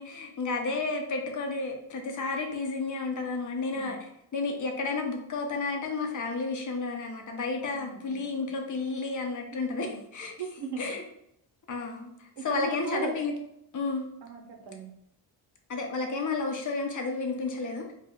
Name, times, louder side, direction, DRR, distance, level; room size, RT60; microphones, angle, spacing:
voice 1, 0.0-4.0 4.3-10.3 10.8-11.0 11.7-13.3 13.7-14.0 15.7-17.9, left 3 dB, 45° left, 2 dB, 0.6 m, -32 dB
voice 2, 7.7-8.2 9.9-10.0 10.4-10.9 12.4-13.2 14.2-14.9, right 3 dB, 60° right, 3 dB, 0.7 m, -37 dB
2.4 x 2.1 x 3.5 m, 0.78 s
cardioid pair, 110°, 44 cm